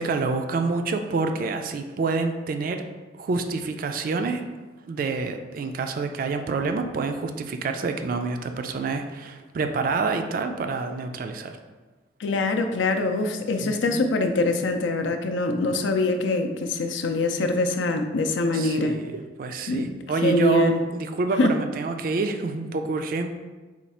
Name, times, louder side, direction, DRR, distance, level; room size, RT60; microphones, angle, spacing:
voice 1, 0.0-2.8 3.2-4.4 4.9-11.6 13.6-14.0 18.5-23.3, right 4 dB, 50° right, 6 dB, 0.3 m, -27 dB
voice 2, 12.2-19.0 19.7-19.9 20.2-20.8 21.4-21.5, left 2 dB, 85° left, 5 dB, 0.4 m, -24 dB
4.4 x 2.3 x 4.1 m, 1.3 s
head